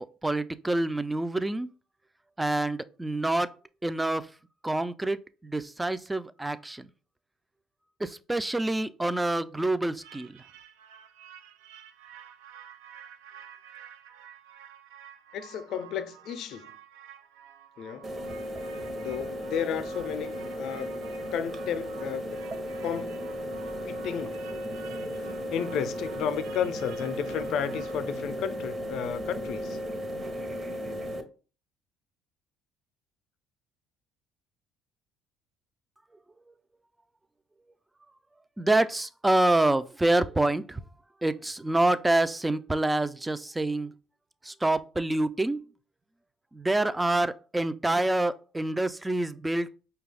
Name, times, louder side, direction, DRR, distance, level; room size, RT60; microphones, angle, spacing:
voice 1, 0.2-1.7 2.4-3.5 3.8-4.3 4.6-6.9 8.0-10.4 38.6-40.8 41.2-43.9 44.4-45.6 46.5-49.8, right 2 dB, 10° right, 0.3 m, -27 dB
sound 1, 10.0-28.0, right 9 dB, 90° right, 0.3 m, -51 dB
voice 2, 15.3-16.7 17.8-18.1 19.0-20.9 21.3-22.4 22.8-23.4 23.8-24.6 25.2-29.8, left 8 dB, 65° left, 0.5 m, -33 dB
sound 2, 18.0-31.2, equal, 30° right, 0.9 m, -35 dB
5.0 x 2.3 x 3.3 m
supercardioid pair, 80°, 0 cm